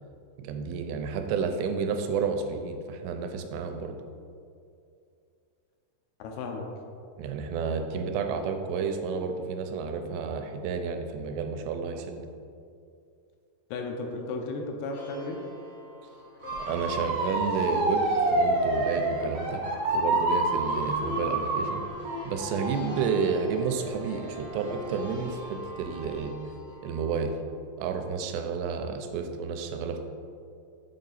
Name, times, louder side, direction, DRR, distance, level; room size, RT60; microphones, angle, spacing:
voice 1, 0.4-4.0 7.2-12.3 16.6-19.6 19.9-21.9 22.2-26.3 26.8-27.3 27.8-30.0, right 5 dB, 90° right, 6 dB, 2.7 m, -31 dB
voice 2, 6.2-6.7 13.7-15.4, left 3 dB, 80° left, 2 dB, 2.6 m, -34 dB
sound 1, 14.9-27.2, left 1 dB, 65° left, 2.3 m, -42 dB
Motor vehicle (road) / Siren, 16.4-25.3 25.8-26.2, right 2 dB, 65° right, 2.9 m, -29 dB
7.9 x 3.8 x 4.1 m, 2.4 s
omnidirectional pair, 4.7 m